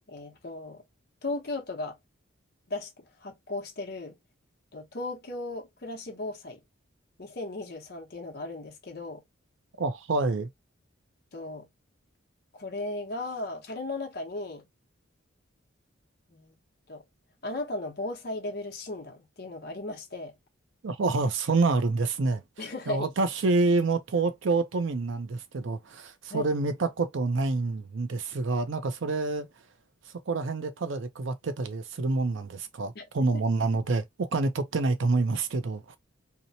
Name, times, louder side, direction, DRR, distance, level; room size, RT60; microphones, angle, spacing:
voice 1, 0.1-0.8 1.2-2.0 2.7-4.2 4.7-6.6 7.2-9.2 11.3-11.7 12.5-14.7 16.3-16.6 16.9-17.0 17.4-20.3 22.6-23.1 26.3-26.5 32.9-33.3, left 2 dB, 50° left, 0.8 m, -36 dB
voice 2, 9.8-10.5 20.8-22.4 22.9-29.5 30.3-36.0, right 3 dB, 65° right, 0.5 m, -27 dB
2.7 x 2.1 x 2.7 m
head